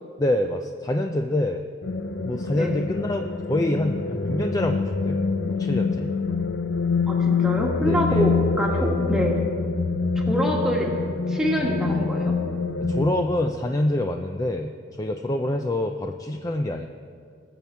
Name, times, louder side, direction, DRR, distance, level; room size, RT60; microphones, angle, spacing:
voice 1, 0.2-1.6 2.2-5.2 5.5-6.1 7.8-8.3 8.7-8.9 12.8-14.7 15.0-16.9, left 1 dB, 20° left, 5 dB, 0.4 m, -26 dB
sound 1, 1.8-13.3, left 4 dB, 75° left, 0.6 m, -25 dB
voice 2, 7.1-9.4 10.3-10.9 11.3-12.3, equal, 5° right, -1 dB, 1.6 m, -25 dB
20.0 x 7.2 x 4.5 m, 2.3 s
head